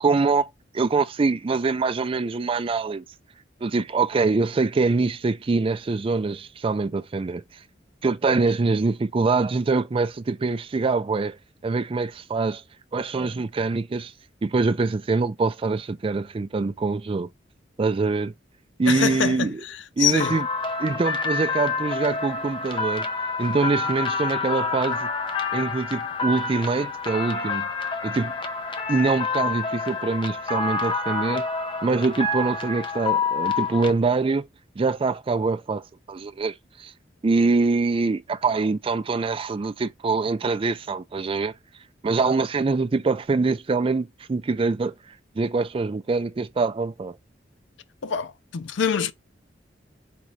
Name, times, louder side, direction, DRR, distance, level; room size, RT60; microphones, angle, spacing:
voice 1, 0.0-0.5 0.7-3.0 3.6-7.4 8.0-12.6 12.9-14.1 14.4-17.3 17.8-18.3 18.8-19.6 20.0-20.5 20.8-23.1 23.4-25.1 25.5-27.7 28.0-28.3 28.9-31.5 31.8-34.5 34.8-35.8 36.1-36.9 37.2-41.5 42.0-44.9 45.4-47.1, right 4 dB, 30° right, 0.4 m, -24 dB
voice 2, 18.9-20.3 48.0-49.1, left 7 dB, 90° left, 0.5 m, -25 dB
sound 1, 20.2-33.9, left 4 dB, 30° left, 0.6 m, -28 dB
3.9 x 3.8 x 3.1 m
head